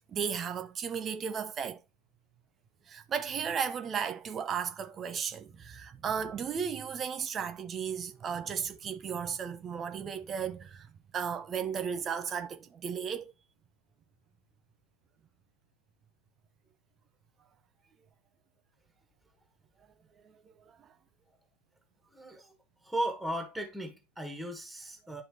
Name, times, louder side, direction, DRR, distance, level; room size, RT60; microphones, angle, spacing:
voice 1, 0.0-1.8 2.9-10.9 11.1-13.3 20.2-20.3 20.6-20.9, right 7 dB, 25° right, 0.7 m, -35 dB
voice 2, 22.1-22.6 22.8-25.2, right 1 dB, 5° right, 1.4 m, -36 dB
10.5 x 3.8 x 3.0 m
figure-of-eight pair, 90°, 0 cm